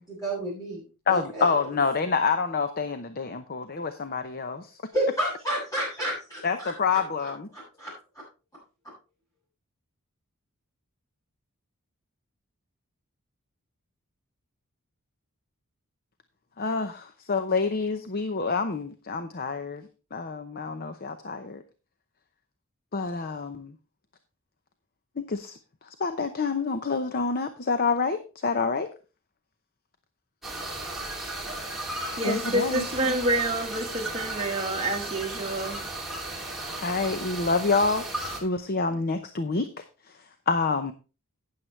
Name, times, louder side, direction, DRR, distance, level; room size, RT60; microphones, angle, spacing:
voice 1, 0.0-1.5 4.9-7.9, right 1 dB, 15° left, 6.8 m, -31 dB
voice 2, 1.1-4.8 6.4-7.5 16.6-21.6 22.9-23.7 25.2-25.6 26.0-28.9 32.2-32.9 36.8-40.2 40.5-40.9, left 4 dB, 45° left, 0.7 m, -27 dB
sound 1, 30.4-38.4, right 2 dB, ahead, 2.7 m, -35 dB
voice 3, 32.2-35.8, right 1 dB, 30° right, 1.6 m, -28 dB
12.0 x 9.6 x 3.2 m
head